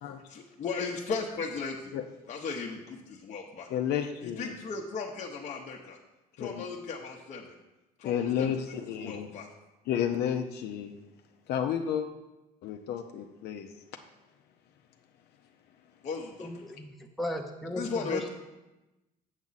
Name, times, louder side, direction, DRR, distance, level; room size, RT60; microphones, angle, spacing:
voice 1, 0.3-1.9 2.3-3.7 4.2-6.0 6.4-7.5 8.0-8.5 9.0-9.5 16.0-16.5 17.7-18.3, left 4 dB, 45° left, -1 dB, 0.8 m, -36 dB
voice 2, 3.7-4.5 6.4-6.7 8.0-9.3 9.9-10.9 11.5-12.1 12.6-13.7, left 9 dB, 75° left, 5 dB, 0.6 m, -31 dB
voice 3, 16.4-18.3, left 1 dB, ahead, 2 dB, 0.7 m, -36 dB
7.3 x 7.2 x 4.0 m, 1.0 s
cardioid pair, 110°, 17 cm